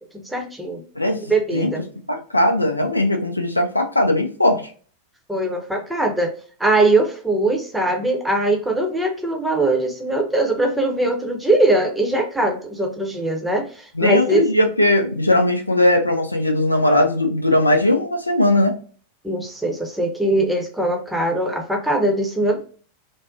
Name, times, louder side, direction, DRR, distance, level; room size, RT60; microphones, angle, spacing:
voice 1, 0.1-0.8 1.3-1.8 5.3-6.3 6.6-14.4 19.2-22.6, right 2 dB, 5° right, 2 dB, 0.7 m, -21 dB
voice 2, 2.1-4.6 14.0-18.7, left 1 dB, 85° left, 4 dB, 0.4 m, -18 dB
2.5 x 2.1 x 2.3 m, 0.42 s
figure-of-eight pair, 90°, 0 cm